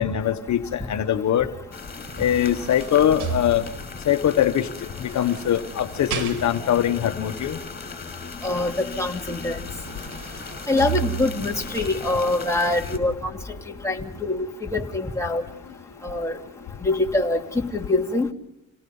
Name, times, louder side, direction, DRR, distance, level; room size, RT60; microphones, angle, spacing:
voice 1, 0.0-1.5 2.2-3.6 4.1-4.7 5.0-7.6, left 10 dB, 65° left, 8 dB, 1.3 m, -22 dB
sound 1, 1.7-13.0, left 4 dB, 30° left, 5.5 m, -38 dB
sound 2, 1.8-4.1 4.9-6.9 9.1-9.2 9.6-11.6 12.2-12.3, right 7 dB, 80° right, 2.5 m, -34 dB
voice 2, 8.4-9.6 10.7-13.3 13.8-14.5 14.7-15.4 16.0-16.3 16.8-17.4 17.7-18.3, left 2 dB, 10° left, 0 dB, 3.0 m, -24 dB
29.0 x 18.0 x 5.5 m, 0.87 s
cardioid pair, 90°, 30 cm